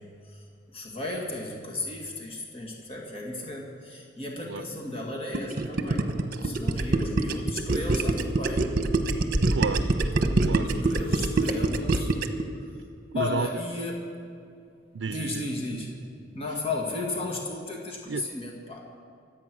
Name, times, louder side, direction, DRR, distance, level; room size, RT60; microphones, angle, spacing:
voice 1, 0.0-6.0 6.4-8.7 10.6-12.1 12.6-12.7 13.1-14.1 15.1-16.0 16.3-18.8, left 2 dB, 35° left, -1 dB, 2.1 m, -34 dB
Gurgling, 5.3-12.4, right 2 dB, 50° right, 1.0 m, -24 dB
voice 2, 9.5-9.9 10.4-10.7 13.1-13.5 14.9-15.5 18.1-18.3, right 5 dB, 80° right, 9 dB, 0.5 m, -31 dB
24.5 x 8.8 x 6.2 m, 2.5 s
head